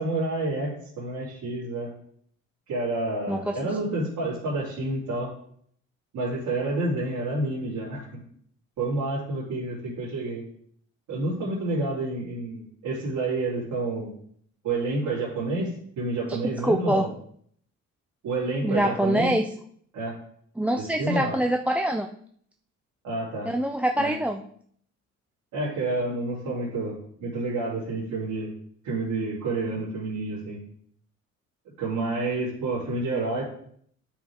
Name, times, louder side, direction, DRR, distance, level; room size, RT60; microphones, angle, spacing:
voice 1, 0.0-1.9 2.7-5.3 6.1-8.1 8.8-10.4 11.1-14.1 14.6-15.7 16.0-17.1 18.2-19.3 19.9-20.1 20.8-21.3 23.0-23.5 24.0-24.1 25.5-28.5 28.8-30.6 31.8-33.4, right 2 dB, 85° right, -8 dB, 3.5 m, -29 dB
voice 2, 16.3-17.1 18.6-19.4 20.6-22.1 23.4-24.4, right 1 dB, 5° right, 6 dB, 0.5 m, -25 dB
9.3 x 6.0 x 3.6 m, 0.63 s
cardioid pair, 90°, 30 cm